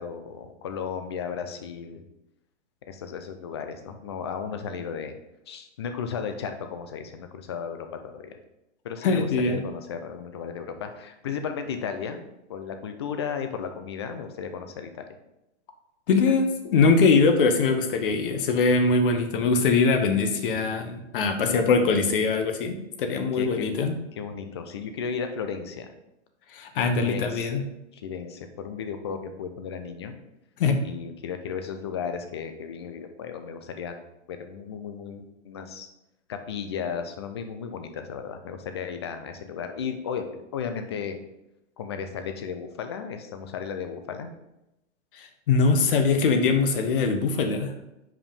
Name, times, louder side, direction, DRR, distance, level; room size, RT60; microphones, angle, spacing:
voice 1, 0.0-2.1 2.9-5.2 5.5-8.4 8.8-12.2 12.5-15.2 21.4-22.0 23.3-23.8 24.2-25.9 27.0-27.7 27.9-30.1 30.8-34.0 34.3-35.9 36.3-41.2 41.8-44.3, left 6 dB, 25° left, 7 dB, 0.4 m, -34 dB
voice 2, 9.0-9.6 16.1-23.9 26.5-27.6 30.6-30.8 45.2-47.7, left 4 dB, 45° left, 6 dB, 1.0 m, -22 dB
5.3 x 4.9 x 5.4 m, 0.91 s
hypercardioid pair, 155°, 36 cm